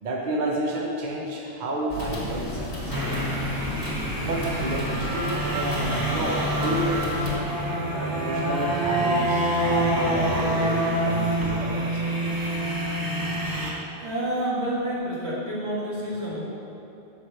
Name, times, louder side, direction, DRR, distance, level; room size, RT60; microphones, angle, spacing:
voice 1, 0.0-3.0 4.1-7.3 7.9-12.0, right 2 dB, 50° right, -2 dB, 0.9 m, -30 dB
sound 1, 1.9-7.4, left 1 dB, 70° left, 1.6 m, -33 dB
sound 2, 2.9-13.7, right 1 dB, 20° right, 0.9 m, -26 dB
voice 2, 12.4-13.3 14.0-16.4, right 1 dB, 85° right, -7 dB, 2.1 m, -30 dB
7.2 x 4.7 x 6.2 m, 2.9 s
omnidirectional pair, 1.1 m